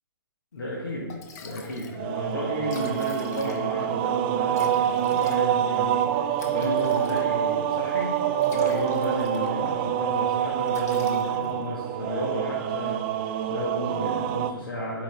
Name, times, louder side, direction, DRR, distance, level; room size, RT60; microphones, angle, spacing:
voice 1, 0.5-1.1 1.4-15.0, equal, 65° left, -4 dB, 1.7 m, -33 dB
Liquid, 0.7-0.8 1.1-2.0 2.3-2.4 2.6-3.9 4.5-7.6 8.2-9.7 10.1-10.3 10.7-11.7, left 4 dB, 40° left, 1.0 m, -44 dB
sound 1, 2.0-14.5, right 10 dB, 25° right, 0.3 m, -26 dB
8.7 x 4.9 x 3.7 m, 1.3 s
figure-of-eight pair, 125°, 13 cm